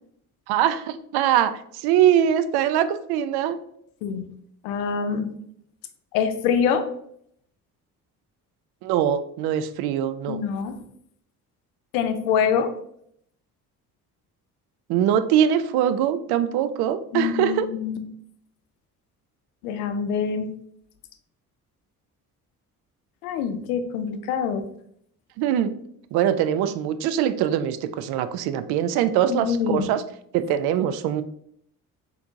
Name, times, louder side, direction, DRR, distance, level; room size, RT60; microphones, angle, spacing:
voice 1, 0.5-3.6 8.8-10.4 14.9-17.7 25.4-25.7 26.1-30.0 30.3-31.2, right 10 dB, 60° right, 13 dB, 0.5 m, -22 dB
voice 2, 4.6-5.3 6.1-6.9 10.3-10.8 11.9-12.7 17.1-18.0 19.6-20.5 23.2-24.7 29.3-29.9, left 7 dB, 75° left, 9 dB, 0.6 m, -25 dB
4.3 x 2.7 x 2.6 m, 0.69 s
hypercardioid pair, 45°, 44 cm